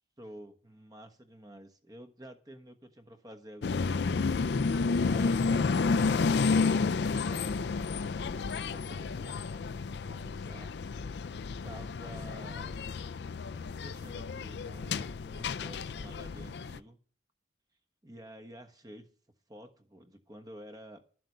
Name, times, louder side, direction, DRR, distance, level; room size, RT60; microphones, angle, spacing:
voice 1, 0.2-4.3 5.0-9.6 10.0-10.8 11.1-11.4 11.6-12.8 13.8-17.0 18.0-19.1 19.5-21.0, right 1 dB, 20° right, 7 dB, 1.3 m, -50 dB
sound 1, 3.6-16.8, left 4 dB, 75° left, 0.4 m, -31 dB
12.0 x 7.7 x 6.7 m, 0.41 s
head